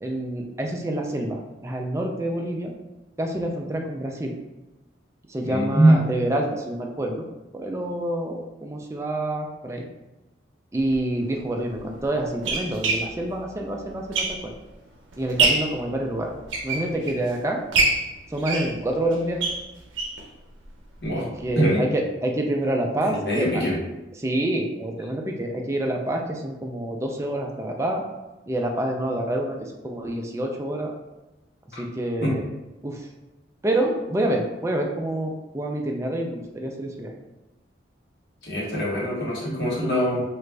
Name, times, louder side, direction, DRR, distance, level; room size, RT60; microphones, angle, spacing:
voice 1, 0.0-2.7 3.2-4.4 5.3-7.2 7.5-9.9 10.7-14.5 15.2-16.3 16.6-17.6 18.3-19.4 21.2-23.6 24.2-28.0 28.5-30.9 31.8-32.4 32.8-33.1 33.6-37.1, right 1 dB, 15° right, 1 dB, 0.3 m, -27 dB
voice 2, 5.4-6.0 21.0-21.3 21.5-21.8 23.0-23.7 32.2-32.3 38.4-40.2, right 1 dB, 60° left, -6 dB, 1.1 m, -22 dB
sound 1, 10.8-11.0 11.8-14.7 15.1-15.8 16.3-17.3 17.7-20.3 20.6-20.7 21.0-21.1 21.5-21.6, right 3 dB, 90° right, 0.6 m, -25 dB
3.1 x 2.4 x 3.3 m, 1.1 s
head